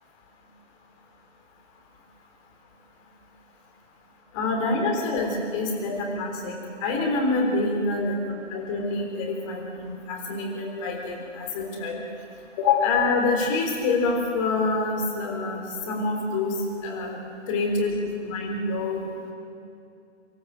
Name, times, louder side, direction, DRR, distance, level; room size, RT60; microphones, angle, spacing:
voice 1, 4.3-8.2 8.5-12.0 12.6-15.6 15.9-17.2 17.5-19.1, left 3 dB, 25° left, 0 dB, 3.7 m, -26 dB
25.5 x 13.5 x 7.8 m, 2.5 s
figure-of-eight pair, 135°, 37 cm